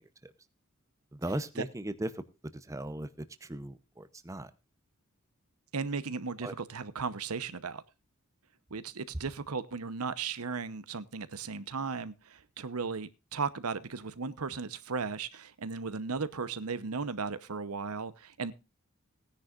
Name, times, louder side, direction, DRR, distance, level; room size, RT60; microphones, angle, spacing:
voice 1, 1.1-2.2 2.5-4.5 6.4-6.5, right 1 dB, 15° right, 0.7 m, -38 dB
voice 2, 5.7-7.8 8.7-18.5, right 5 dB, 85° right, 0.9 m, -36 dB
18.0 x 10.0 x 2.5 m
head